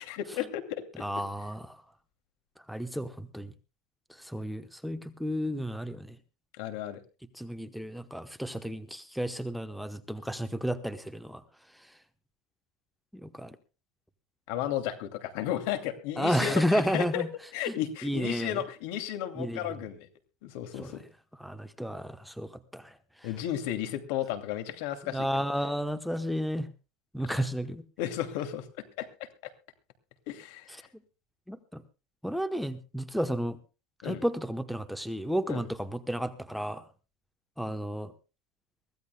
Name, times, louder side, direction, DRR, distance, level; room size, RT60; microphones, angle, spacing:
voice 1, 0.0-1.0 6.6-7.0 14.5-17.2 17.5-20.1 20.4-21.0 23.2-25.3 28.0-29.1 29.4-29.5 30.3-30.7 34.0-34.2 35.5-35.6, left 11 dB, 70° left, 9 dB, 2.5 m, -34 dB
voice 2, 1.0-1.8 2.7-3.5 4.2-6.2 7.3-11.4 13.2-13.6 16.2-17.3 17.7-17.8 18.0-18.6 19.4-19.6 20.8-20.9 21.4-22.9 25.1-26.7 27.1-27.8 31.5-31.8 32.2-33.6 34.0-36.8 37.6-38.1, equal, ahead, 11 dB, 0.9 m, -32 dB
23.5 x 16.0 x 2.2 m, 0.32 s
supercardioid pair, 145°, 0 cm